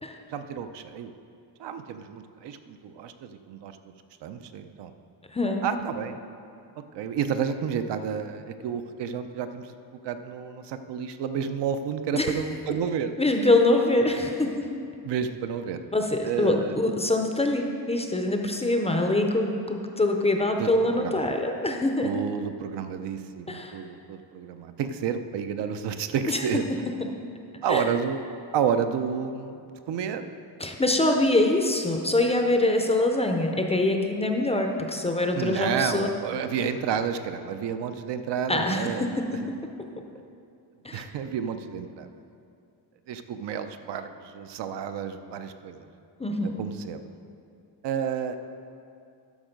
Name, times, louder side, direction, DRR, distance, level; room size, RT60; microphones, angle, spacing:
voice 1, 0.3-1.1 1.6-3.8 4.2-4.9 5.6-6.2 6.9-9.7 10.0-13.1 15.0-15.8 16.2-16.8 20.6-21.3 22.0-26.6 27.6-28.2 28.5-29.6 29.9-30.3 35.3-39.4 40.9-42.1 43.1-45.9 46.4-47.0 47.8-48.4, right 7 dB, 75° right, 9 dB, 0.7 m, -30 dB
voice 2, 5.3-5.6 12.1-12.4 13.2-14.7 15.9-22.2 23.5-23.8 26.3-26.4 27.7-27.8 30.6-36.1 38.5-39.5 40.8-41.0 46.2-46.6, left 2 dB, 15° left, 3 dB, 0.5 m, -24 dB
12.0 x 6.3 x 5.1 m, 2.5 s
cardioid pair, 170°, 43 cm